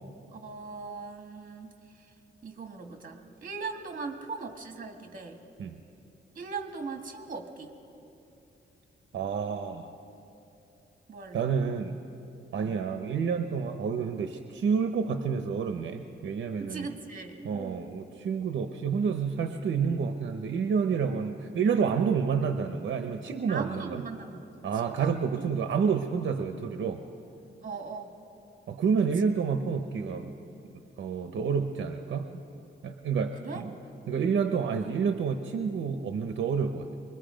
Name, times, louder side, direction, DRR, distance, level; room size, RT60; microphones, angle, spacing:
voice 1, 0.3-1.7 2.4-5.4 6.4-7.8 11.1-11.5 12.5-12.8 16.6-18.0 23.5-24.5 24.7-25.5 27.6-28.1 33.4-33.7, right 4 dB, 40° right, 4 dB, 1.9 m, -39 dB
voice 2, 9.1-9.9 11.3-12.0 12.5-16.9 17.4-24.0 24.6-27.0 28.7-30.3 31.0-32.3 32.8-33.7 34.1-37.0, right 6 dB, 65° right, 7 dB, 0.8 m, -29 dB
24.0 x 21.0 x 5.1 m, 2.9 s
wide cardioid pair, 135°, 21 cm